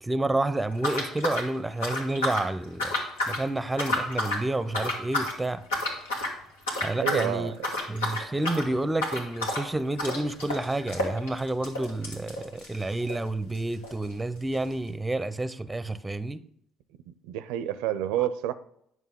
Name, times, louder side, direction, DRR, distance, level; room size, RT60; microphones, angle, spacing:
voice 1, 0.0-3.0 3.3-5.6 6.8-7.5 7.9-16.4, right 2 dB, 15° right, 0.6 m, -29 dB
sound 1, 0.8-2.5 2.8-3.4 3.7-4.4 4.7-5.4 5.7-6.4 6.7-7.3 7.6-13.2 13.5-13.6 13.8-13.9 14.6-14.7, left 1 dB, 85° left, 1.6 m, -30 dB
voice 2, 7.0-7.7 17.1-18.5, right 11 dB, 75° right, 0.5 m, -29 dB
9.1 x 6.2 x 3.7 m
hypercardioid pair, 55°, 0 cm